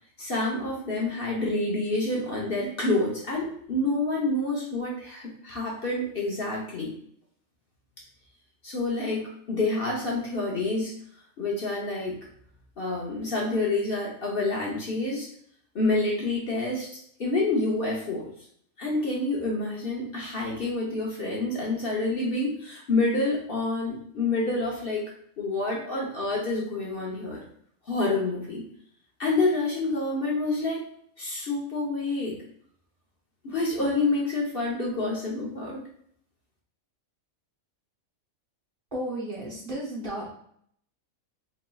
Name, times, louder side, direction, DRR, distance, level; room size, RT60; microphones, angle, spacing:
voice 1, 0.2-6.9 8.6-10.9 11.4-12.2 12.8-15.3 15.7-18.3 18.8-25.1 25.4-27.4 27.9-28.6 29.2-30.8 31.2-32.4 33.4-35.8, left 2 dB, 50° left, -3 dB, 0.9 m, -28 dB
voice 2, 38.9-40.3, right 1 dB, 45° right, -5 dB, 0.9 m, -33 dB
4.3 x 3.0 x 2.2 m, 0.65 s
omnidirectional pair, 1.4 m